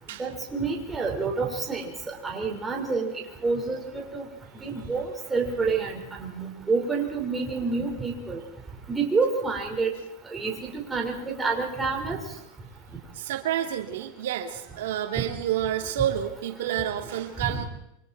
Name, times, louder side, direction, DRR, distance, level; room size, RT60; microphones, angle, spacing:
voice 1, 0.2-1.9 2.2-3.1 3.4-4.2 4.6-8.4 8.9-9.9 10.3-10.5 10.9-12.2 17.4-17.6, right 4 dB, 15° right, 0 dB, 5.2 m, -28 dB
voice 2, 13.1-17.6, right 10 dB, 80° right, 4 dB, 2.6 m, -29 dB
28.0 x 25.0 x 4.6 m, 0.77 s
supercardioid pair, 135°, 0 cm